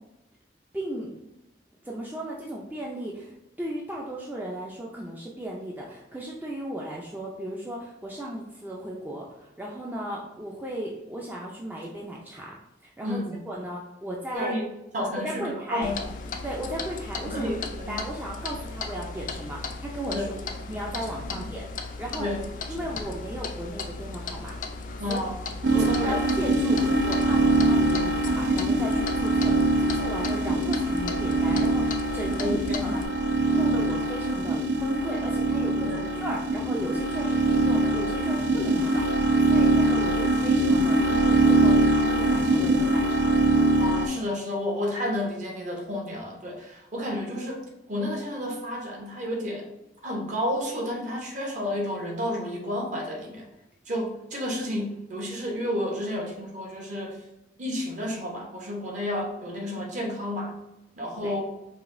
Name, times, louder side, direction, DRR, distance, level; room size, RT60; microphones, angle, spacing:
voice 1, 0.7-1.1 1.8-14.5 15.2-15.9 16.4-17.5 17.9-20.3 20.7-22.3 22.7-24.6 25.1-25.2 25.7-33.1 33.5-43.3 61.2-61.4, right 1 dB, 10° right, -3 dB, 0.4 m, -35 dB
voice 2, 13.0-13.4 14.3-16.1 17.2-18.0 20.1-20.3 21.3-21.5 22.2-22.4 22.8-22.9 25.0-25.4 25.7-26.2 32.4-33.0 35.8-36.1 43.8-49.7 50.0-53.4 53.9-57.2 57.6-60.6 61.0-61.4, left 1 dB, 45° right, 0 dB, 0.9 m, -31 dB
Clock, 15.8-33.1, left 4 dB, 50° left, 0.4 m, -36 dB
sound 1, 25.6-44.1, right 2 dB, 75° right, 0.5 m, -23 dB
4.9 x 2.8 x 2.6 m, 0.92 s
head